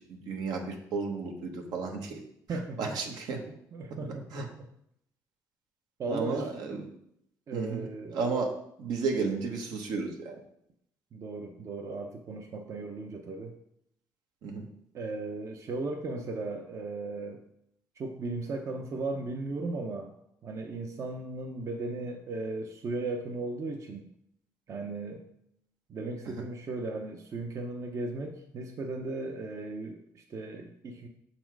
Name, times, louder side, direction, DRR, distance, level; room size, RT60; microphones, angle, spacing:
voice 1, 0.1-2.2 2.8-3.4 4.3-4.5 6.1-6.9 7.5-8.5 8.8-10.4 14.4-14.7, right 4 dB, 80° right, 3 dB, 1.1 m, -33 dB
voice 2, 2.5-3.0 3.7-4.7 6.0-6.5 7.5-8.2 11.1-13.6 14.9-17.4 18.0-20.1 20.4-24.1 24.7-25.3 25.9-31.1, right 3 dB, 45° right, 4 dB, 0.6 m, -36 dB
6.1 x 4.3 x 4.6 m, 0.75 s
cardioid pair, 105°, 7 cm